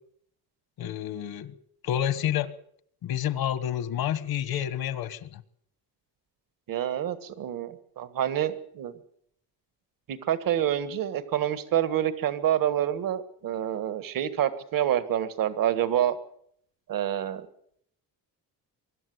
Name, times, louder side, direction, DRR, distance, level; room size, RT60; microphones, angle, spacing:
voice 1, 0.8-1.5 1.8-2.5 3.0-5.4, left 10 dB, 75° left, 1.4 m, -29 dB
voice 2, 6.7-8.9 10.1-16.2 16.9-17.5, right 10 dB, 65° right, 1.7 m, -27 dB
24.0 x 12.5 x 9.5 m
cardioid pair, 145°, 37 cm